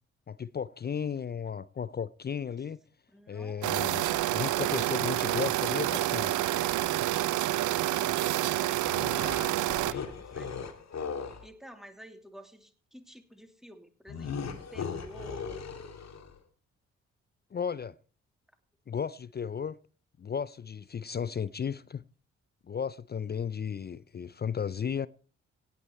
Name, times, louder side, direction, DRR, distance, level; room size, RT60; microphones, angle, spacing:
voice 1, 0.3-2.8 3.3-6.3 17.5-18.0 18.9-19.8 20.2-22.0 22.7-25.1, left 7 dB, 30° left, 0.5 m, -34 dB
voice 2, 3.1-3.7 6.8-10.8 11.4-15.7, equal, ahead, 2.9 m, -51 dB
sound 1, 3.6-9.9, right 15 dB, 65° right, 0.7 m, -28 dB
sound 2, 8.8-11.5 14.1-16.4, left 6 dB, 55° left, 2.1 m, -38 dB
17.0 x 9.3 x 4.4 m
hypercardioid pair, 40°, 33 cm